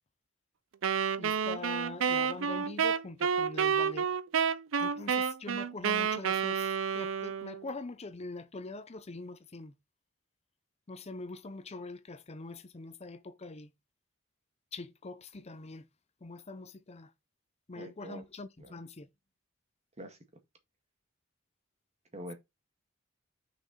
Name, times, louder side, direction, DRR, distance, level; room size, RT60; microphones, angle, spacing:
Wind instrument woodwind instrument, 0.8-7.7, right 7 dB, 80° right, 0.5 m, -30 dB
voice 1, 1.2-4.1 4.8-9.7 10.9-13.7 14.7-15.8 16.2-17.1 17.7-19.1, left 3 dB, 35° left, 0.6 m, -43 dB
voice 2, 17.8-18.2 18.6-18.8 20.0-20.2 22.1-22.3, equal, 35° right, 1.8 m, -44 dB
6.3 x 4.9 x 4.1 m
head